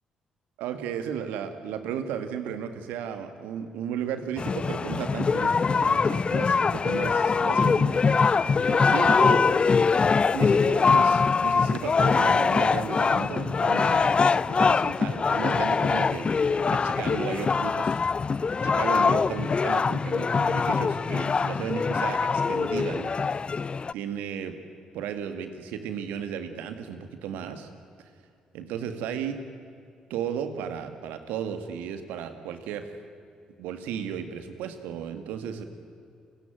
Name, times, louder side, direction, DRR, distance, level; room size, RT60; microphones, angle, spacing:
voice 1, 0.6-8.0 8.4-9.5 10.3-16.3 16.7-18.0 18.6-23.1 23.9-24.6 24.9-27.7 28.5-29.4 30.1-32.9 33.6-35.6, right 8 dB, 70° right, 8 dB, 2.0 m, -34 dB
sound 1, 4.4-23.9, left 5 dB, 35° left, 0.6 m, -23 dB
29.5 x 16.5 x 9.3 m, 2.4 s
hypercardioid pair, 40°, 3 cm